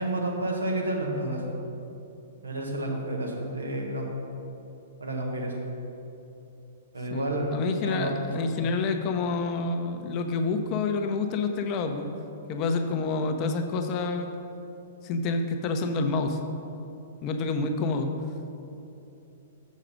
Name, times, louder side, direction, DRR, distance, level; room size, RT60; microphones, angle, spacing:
voice 1, 0.0-1.4 2.4-4.1 5.0-5.5 6.9-7.5 7.8-8.3, right 1 dB, 80° right, 0 dB, 1.4 m, -30 dB
voice 2, 7.1-12.1 12.5-14.3 15.0-16.4 17.2-18.1, left 3 dB, 35° left, 6 dB, 0.7 m, -28 dB
7.5 x 6.3 x 5.1 m, 2.8 s
figure-of-eight pair, 110°, 0 cm